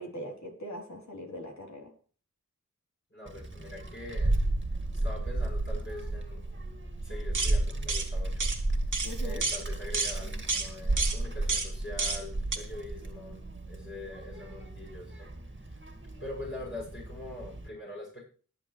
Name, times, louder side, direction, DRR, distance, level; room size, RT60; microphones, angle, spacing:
voice 1, 0.0-1.9 9.0-9.4, equal, 55° left, 0 dB, 3.6 m, -41 dB
voice 2, 3.1-4.4 5.0-6.4 7.0-8.5 9.2-15.8 16.2-18.3, left 2 dB, 35° left, -4 dB, 6.4 m, -43 dB
Child speech kid speaking, 3.3-17.7, right 2 dB, 35° right, 2.2 m, -33 dB
sound 1, 7.3-7.6 7.9-8.1 8.4-8.6 8.9-9.1 9.4-9.6 9.9-10.2 10.5-10.7 11.0-11.2 11.5-11.7 12.0-12.2 12.5-12.6, right 4 dB, 70° right, 1.9 m, -30 dB
21.0 x 7.6 x 3.3 m, 0.41 s
cardioid pair, 40°, 33 cm